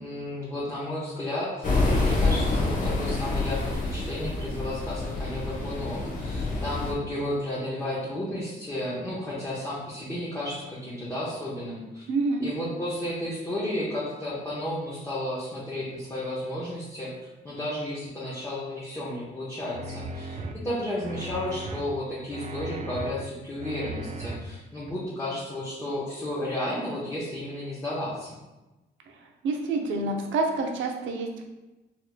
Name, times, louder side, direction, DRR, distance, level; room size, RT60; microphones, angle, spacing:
voice 1, 0.0-12.0 12.4-17.1 17.4-28.3, left 1 dB, 15° left, -8 dB, 0.9 m, -33 dB
sound 1, 1.6-6.9, left 3 dB, 40° left, 0.9 m, -27 dB
voice 2, 12.1-12.5 29.1-29.2 29.4-31.5, right 3 dB, 75° right, 2 dB, 0.6 m, -28 dB
sound 2, 19.7-20.5 21.0-21.8 22.3-23.1 23.6-24.4 24.9-25.0, right 2 dB, 35° right, 0.4 m, -36 dB
4.3 x 3.0 x 2.2 m, 1.1 s
cardioid pair, 90°, 20 cm